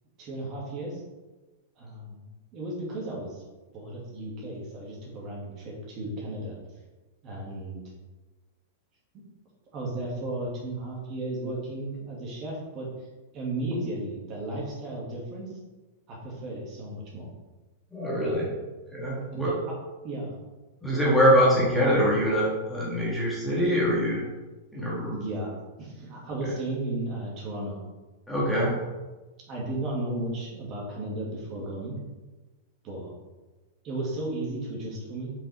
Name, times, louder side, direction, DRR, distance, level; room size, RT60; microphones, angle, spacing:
voice 1, 0.2-1.0 1.8-3.4 3.7-6.6 7.2-7.8 9.7-12.9 13.3-15.5 16.1-17.3 18.1-18.5 19.3-19.7 20.0-20.3 25.1-25.5 25.8-27.8 28.5-28.8 29.5-31.9 32.8-33.1 33.8-35.3, right 1 dB, 30° right, -3 dB, 2.2 m, -34 dB
voice 2, 17.9-18.5 18.9-19.5 20.8-24.2 24.7-25.1 28.3-28.7, equal, ahead, -7 dB, 1.6 m, -23 dB
7.2 x 5.4 x 3.5 m, 1.2 s
supercardioid pair, 155°, 0 cm